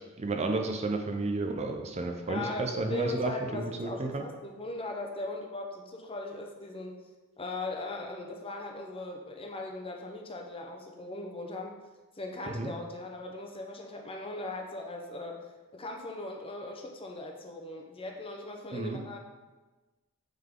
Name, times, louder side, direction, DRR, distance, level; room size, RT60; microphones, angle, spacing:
voice 1, 0.2-4.2 12.5-12.7 18.7-19.0, right 2 dB, 30° right, 4 dB, 0.5 m, -32 dB
voice 2, 2.3-7.0 7.4-11.7 12.2-15.4 15.7-19.2, left 2 dB, 25° left, 2 dB, 0.7 m, -39 dB
8.8 x 3.7 x 3.7 m, 1.2 s
head